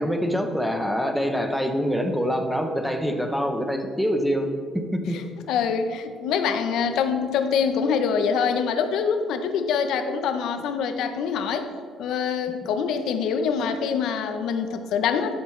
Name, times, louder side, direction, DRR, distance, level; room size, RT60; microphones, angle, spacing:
voice 1, 0.0-5.2, equal, ahead, 5 dB, 0.7 m, -25 dB
voice 2, 5.5-11.7 12.0-15.3, left 6 dB, 75° left, 8 dB, 0.7 m, -25 dB
12.5 x 6.8 x 3.2 m, 2.1 s
cardioid pair, 155°, 0 cm